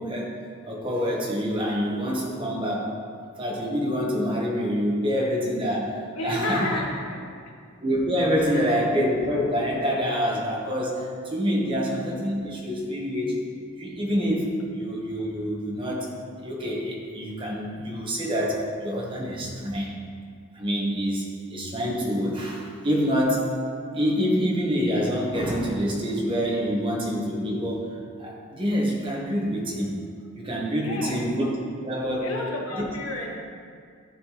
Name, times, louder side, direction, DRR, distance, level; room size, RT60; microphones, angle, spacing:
voice 1, 0.0-3.0 3.4-6.8 7.8-13.4 13.8-16.1 16.4-20.0 20.5-23.6 23.9-30.0 30.4-31.5 31.8-32.3 32.7-32.8, equal, 25° right, -3 dB, 1.0 m, -26 dB
voice 2, 6.1-7.3 8.5-8.6 30.8-31.3 32.2-33.5, left 1 dB, 80° left, -1 dB, 1.2 m, -31 dB
12.5 x 4.3 x 2.9 m, 2.2 s
head